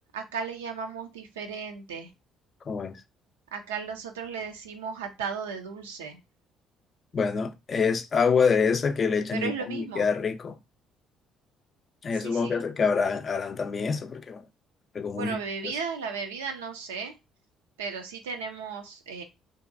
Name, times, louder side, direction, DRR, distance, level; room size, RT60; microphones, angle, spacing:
voice 1, 0.1-2.1 3.5-6.2 9.3-10.1 12.1-12.6 15.2-17.1 17.8-19.2, right 5 dB, 90° right, 0.4 m, -35 dB
voice 2, 2.7-3.0 7.1-10.6 12.0-14.4 14.9-15.7, left 5 dB, 45° left, 0.4 m, -26 dB
2.6 x 2.2 x 2.5 m
hypercardioid pair, 55°, 0 cm